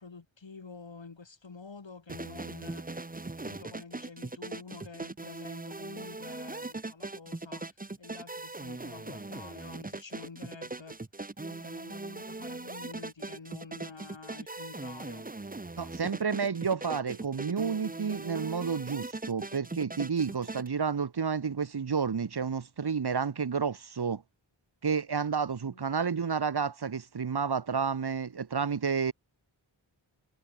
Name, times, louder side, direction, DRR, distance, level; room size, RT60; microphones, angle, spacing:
voice 1, 0.0-3.0 3.4-11.0 11.4-15.3 25.7-25.9, left 4 dB, 70° left, 3.0 m, -48 dB
sound 1, 2.1-20.7, right 2 dB, 20° right, 0.9 m, -40 dB
voice 2, 15.8-24.2 24.8-29.1, right 6 dB, 55° right, 1.0 m, -30 dB
wide cardioid pair, 40°, 47 cm